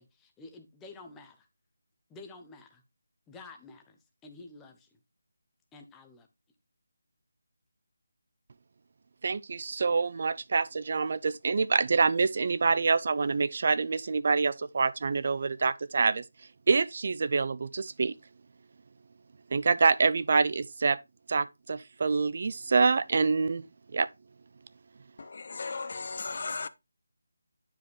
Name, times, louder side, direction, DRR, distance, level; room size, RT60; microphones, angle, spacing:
voice 1, 0.0-1.5 2.1-2.8 3.3-5.0 5.7-6.3, left 3 dB, 5° left, 0.7 m, -50 dB
voice 2, 9.2-16.2 16.7-18.2 19.5-21.0 21.3-23.7 23.9-24.1, right 4 dB, 40° right, 0.4 m, -26 dB
voice 3, 25.2-26.7, left 4 dB, 45° left, 0.6 m, -36 dB
10.0 x 4.9 x 3.1 m
figure-of-eight pair, 175°, 0 cm